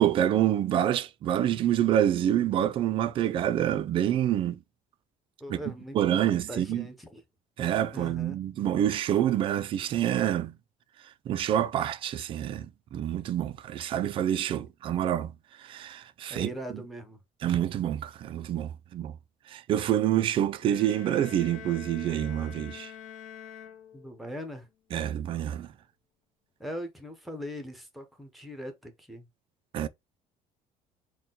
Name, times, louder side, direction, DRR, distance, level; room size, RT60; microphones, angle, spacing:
voice 1, 0.0-4.6 5.5-5.6 5.9-6.8 7.6-10.6 11.3-16.5 17.4-19.1 19.5-22.9 24.9-25.7 29.7-29.9, right 11 dB, 40° right, 0.4 m, -27 dB
voice 2, 5.4-6.0 6.3-7.2 7.9-8.4 16.3-17.2 23.9-24.7 26.6-29.3, equal, ahead, 0.7 m, -40 dB
sound 1, 20.6-24.4, left 9 dB, 60° left, 0.7 m, -46 dB
4.2 x 2.2 x 3.7 m
cardioid pair, 175°, 14 cm